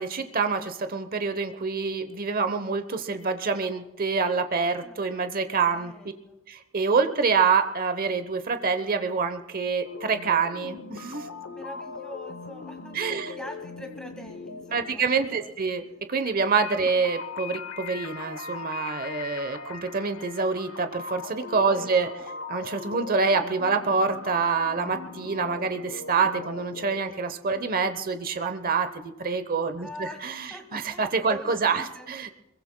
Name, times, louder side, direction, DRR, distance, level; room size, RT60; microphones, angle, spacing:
voice 1, 0.0-5.9 6.5-11.3 12.9-13.3 14.7-15.8 16.1-22.1 22.5-32.3, right 5 dB, 45° right, 9 dB, 0.9 m, -26 dB
voice 2, 4.7-5.2 5.7-6.4 11.5-15.5 21.7-22.2 27.5-27.8 29.8-30.2 30.5-32.1, left 1 dB, 5° left, 3 dB, 1.8 m, -44 dB
sound 1, 9.8-27.0, left 4 dB, 70° left, 0.9 m, -40 dB
25.0 x 22.0 x 2.3 m, 0.93 s
head